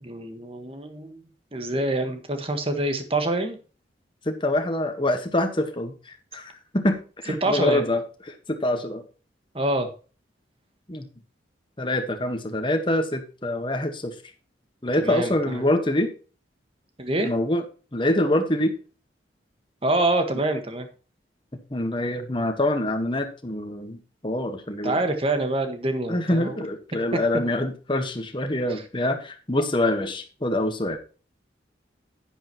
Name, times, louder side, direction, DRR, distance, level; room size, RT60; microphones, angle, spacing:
voice 1, 0.0-1.2 1.5-3.6 7.4-7.8 9.5-9.9 15.0-15.6 17.0-17.3 19.8-20.9 24.8-26.6 28.7-28.8, right 2 dB, 30° right, 6 dB, 1.5 m, -26 dB
voice 2, 4.2-9.0 10.9-11.1 11.8-14.1 14.8-16.1 17.2-17.6 17.9-18.8 21.7-25.0 26.1-31.0, left 1 dB, 25° left, 7 dB, 1.5 m, -25 dB
10.5 x 10.0 x 3.1 m, 0.36 s
head